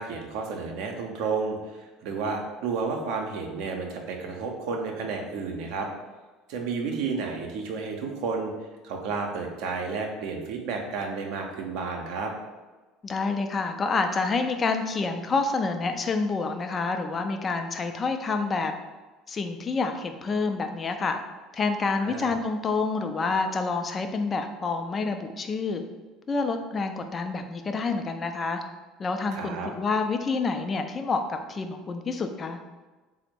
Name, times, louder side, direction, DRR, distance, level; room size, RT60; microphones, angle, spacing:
voice 1, 0.0-5.9 6.5-8.5 8.8-12.3 22.0-22.3 29.3-29.7, right 4 dB, 60° right, 2 dB, 0.6 m, -31 dB
voice 2, 13.0-18.7 19.3-21.2 21.5-25.8 26.3-28.6 29.0-32.6, left 4 dB, 30° left, 6 dB, 0.4 m, -28 dB
4.1 x 2.1 x 4.5 m, 1.3 s
figure-of-eight pair, 65°, 0 cm